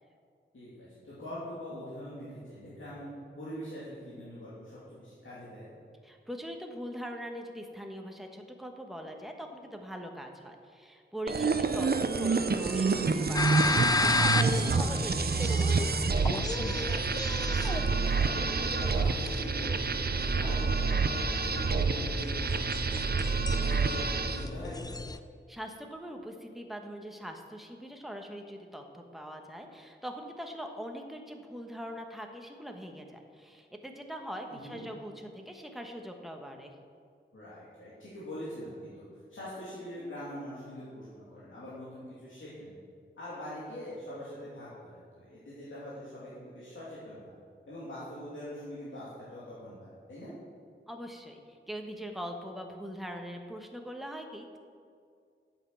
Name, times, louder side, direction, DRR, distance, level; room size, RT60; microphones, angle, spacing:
voice 1, 1.0-5.7 11.5-11.7 16.5-17.0 17.3-17.4 17.6-25.0 34.5-34.9 37.3-39.0 39.3-42.8 43.2-47.2 47.7-50.3, equal, 80° left, -10 dB, 2.8 m, -43 dB
voice 2, 6.0-15.7 25.5-36.7 50.9-54.6, equal, ahead, 3 dB, 1.2 m, -42 dB
sound 1, 11.3-24.5, right 4 dB, 50° right, 0.7 m, -28 dB
sound 2, 13.3-25.2, left 3 dB, 20° left, 0.5 m, -33 dB
9.1 x 7.6 x 7.1 m, 2.2 s
wide cardioid pair, 70°, 20 cm